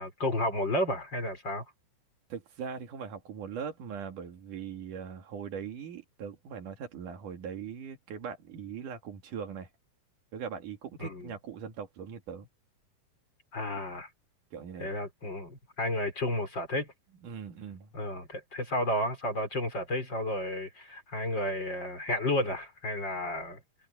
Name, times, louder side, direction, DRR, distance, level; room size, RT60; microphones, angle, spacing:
voice 1, 0.0-1.6 11.0-11.3 13.5-14.1 14.8-16.9 17.9-23.6, left 1 dB, 30° left, 5.5 m, -32 dB
voice 2, 2.3-9.7 10.3-12.5 14.5-14.9 17.2-17.9, right 7 dB, 70° right, 3.6 m, -40 dB
omnidirectional pair, 3.9 m